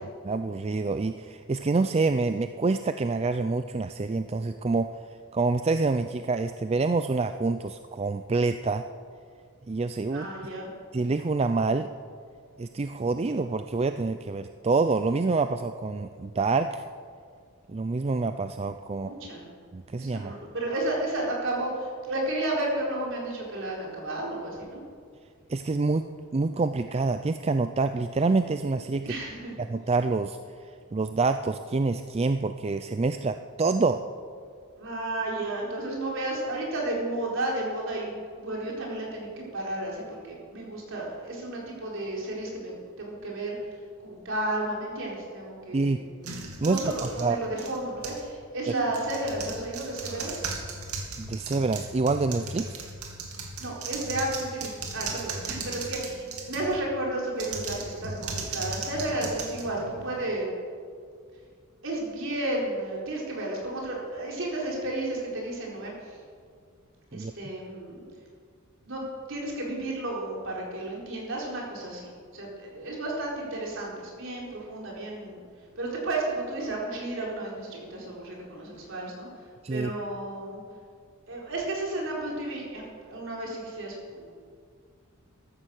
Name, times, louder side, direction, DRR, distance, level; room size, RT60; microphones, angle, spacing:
voice 1, 0.2-4.9 5.3-8.8 9.7-10.3 10.9-11.9 12.6-16.8 17.7-19.1 19.7-20.3 25.5-26.1 26.3-29.2 29.6-30.4 30.9-34.0 45.7-46.0 46.6-46.8 47.2-47.4 51.2-52.8 67.1-67.3 79.6-79.9, right 3 dB, 30° right, 9 dB, 0.4 m, -26 dB
voice 2, 10.1-10.7 18.9-19.4 20.0-24.8 29.0-29.5 34.8-43.5 44.0-46.0 46.6-50.4 53.6-60.5 61.8-66.2 67.1-68.0 68.8-69.0 69.3-75.4 75.8-79.3 79.7-80.6 81.3-84.4, right 1 dB, 60° right, -3 dB, 4.6 m, -32 dB
sound 1, 46.2-48.3 48.9-56.8 57.3-60.2, right 4 dB, 90° right, 2.5 m, -37 dB
14.5 x 13.5 x 6.5 m, 2.1 s
head